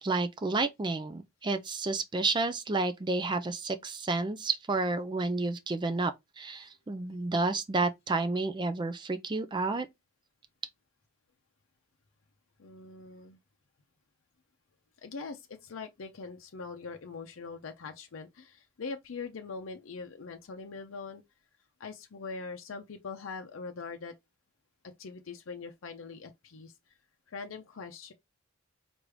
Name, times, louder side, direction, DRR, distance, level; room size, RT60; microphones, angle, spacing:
voice 1, 0.0-9.9, right 3 dB, 25° right, 0.4 m, -30 dB
voice 2, 12.6-13.4 15.0-21.2 21.8-24.1 25.0-26.9 27.3-28.1, left 4 dB, 80° left, 0.6 m, -42 dB
4.7 x 2.5 x 3.2 m
head